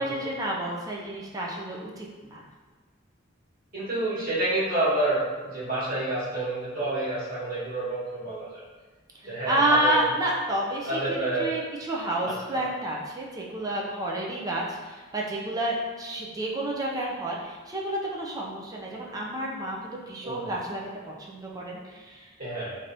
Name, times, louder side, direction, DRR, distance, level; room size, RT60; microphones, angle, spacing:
voice 1, 0.0-2.1 2.3-2.4 9.2-22.3, right 1 dB, 20° right, -3 dB, 0.4 m, -30 dB
voice 2, 3.7-8.6 9.2-10.0 10.9-11.5 12.2-12.6 20.2-20.5 22.4-22.8, right 2 dB, 50° right, -10 dB, 1.4 m, -29 dB
3.3 x 2.6 x 2.7 m, 1.3 s
head